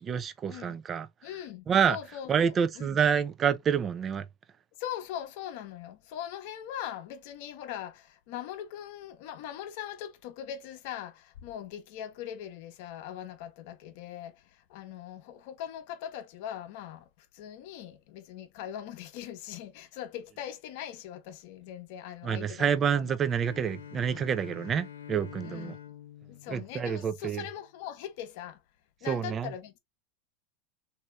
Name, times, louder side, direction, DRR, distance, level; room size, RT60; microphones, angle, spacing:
voice 1, 0.0-1.1 1.7-2.0 2.3-4.2 22.2-25.7 26.5-27.4 29.1-29.5, right 7 dB, 30° right, 0.4 m, -28 dB
voice 2, 1.2-3.0 4.8-17.1 17.3-23.1 25.4-25.8 26.3-28.6 29.0-29.8, left 10 dB, 65° left, 0.7 m, -41 dB
Bowed string instrument, 23.3-27.3, left 10 dB, 90° left, 0.4 m, -47 dB
3.1 x 2.7 x 3.1 m
hypercardioid pair, 95°, 0 cm